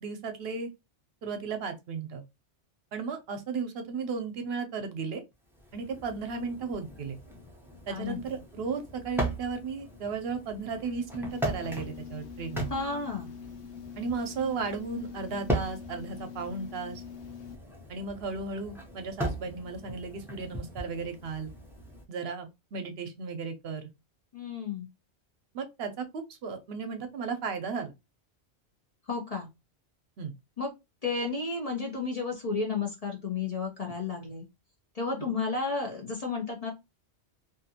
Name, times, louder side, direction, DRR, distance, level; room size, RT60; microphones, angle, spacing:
voice 1, 0.0-0.7 1.2-2.2 2.9-5.2 5.7-7.2 7.9-12.7 14.0-17.0 17.9-21.5 22.1-23.9 25.5-27.9 30.2-30.3, right 4 dB, 65° right, 0.8 m, -35 dB
sound 1, 5.5-22.0, right 1 dB, 5° right, 0.5 m, -39 dB
voice 2, 7.9-8.2 12.7-13.3 24.3-24.9 29.1-29.5 30.6-30.7 31.0-34.4 34.9-36.7, left 4 dB, 40° left, 0.6 m, -32 dB
sound 2, 11.3-17.6, left 8 dB, 80° left, 0.9 m, -44 dB
2.5 x 2.4 x 2.7 m
omnidirectional pair, 1.1 m